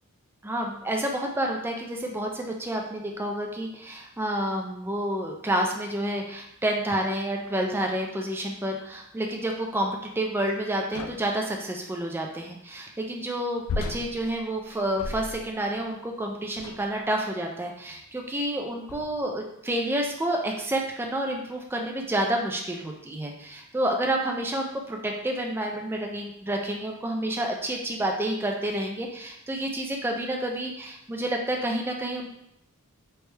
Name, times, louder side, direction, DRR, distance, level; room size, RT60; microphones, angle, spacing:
voice 1, 0.4-32.3, right 1 dB, 10° right, 1 dB, 0.4 m, -29 dB
sound 1, 10.9-11.4 13.7-15.6 16.5-17.0 17.9-18.0 18.9-19.3, left 3 dB, 85° left, 0.4 m, -36 dB
3.3 x 3.0 x 3.2 m, 0.76 s
head